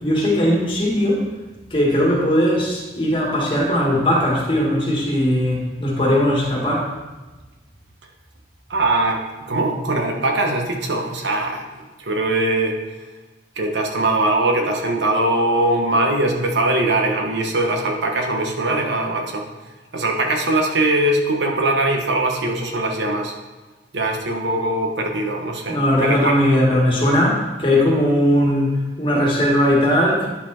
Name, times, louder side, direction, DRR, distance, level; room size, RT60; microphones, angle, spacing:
voice 1, 0.0-1.3 1.7-6.9 25.7-30.3, left 1 dB, 30° left, -3 dB, 1.8 m, -19 dB
voice 2, 8.7-11.6 12.0-12.8 13.6-19.4 19.9-23.3 23.9-26.4, right 2 dB, 80° right, 2 dB, 1.1 m, -21 dB
10.0 x 4.3 x 4.4 m, 1.2 s
head